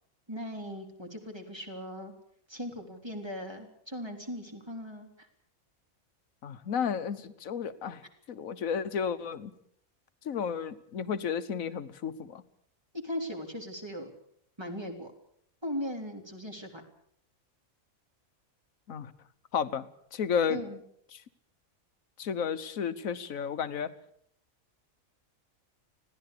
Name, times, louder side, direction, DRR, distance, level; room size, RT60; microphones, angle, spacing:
voice 1, 0.3-2.1 2.5-5.3 13.0-14.1 14.6-15.1 15.6-16.8 20.5-20.8, equal, 20° right, 3 dB, 3.7 m, -38 dB
voice 2, 6.4-8.0 8.3-9.5 10.2-12.4 18.9-19.1 19.5-20.6 21.1-21.2 22.2-23.9, left 7 dB, 75° left, 12 dB, 1.5 m, -32 dB
25.5 x 17.0 x 6.8 m, 0.67 s
omnidirectional pair, 1.5 m